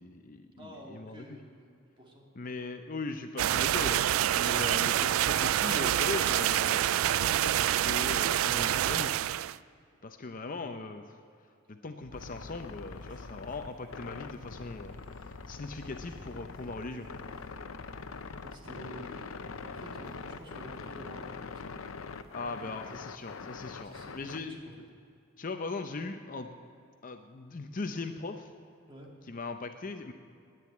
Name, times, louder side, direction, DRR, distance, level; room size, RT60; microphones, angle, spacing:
voice 1, 0.0-1.2 2.4-4.1 4.3-9.1 10.0-11.2 11.7-15.0 15.5-17.1 22.3-24.5 25.4-26.5 27.0-28.5 29.3-30.1, left 3 dB, 40° left, 6 dB, 0.6 m, -39 dB
voice 2, 0.6-2.3 18.4-21.7 22.4-22.8 23.8-24.7 28.9-29.1, equal, 25° right, -1 dB, 2.1 m, -49 dB
sound 1, 3.4-9.6, right 12 dB, 85° right, 0.3 m, -27 dB
sound 2, 12.0-20.3, right 1 dB, 40° right, 1.8 m, -60 dB
sound 3, 12.1-24.4, left 4 dB, 85° left, 0.7 m, -43 dB
10.5 x 9.5 x 9.4 m, 2.4 s
head